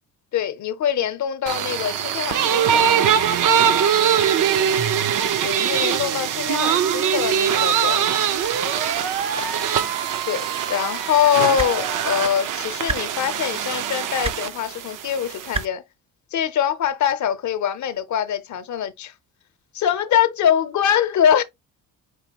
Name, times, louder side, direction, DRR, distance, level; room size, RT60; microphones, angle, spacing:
voice 1, 0.3-2.9 5.4-8.0 10.2-15.8 16.3-19.1 19.7-21.4, left 9 dB, 55° left, 0.7 m, -23 dB
sound 1, 1.5-15.6, right 8 dB, 65° right, 0.6 m, -22 dB
sound 2, 8.3-12.0, right 6 dB, 80° right, 1.0 m, -30 dB
sound 3, 11.6-11.7 12.9-13.0 14.2-14.4 15.5-15.7 16.9-17.0, right 3 dB, 20° right, 0.4 m, -26 dB
4.9 x 3.3 x 2.8 m
cardioid pair, 115°, 34 cm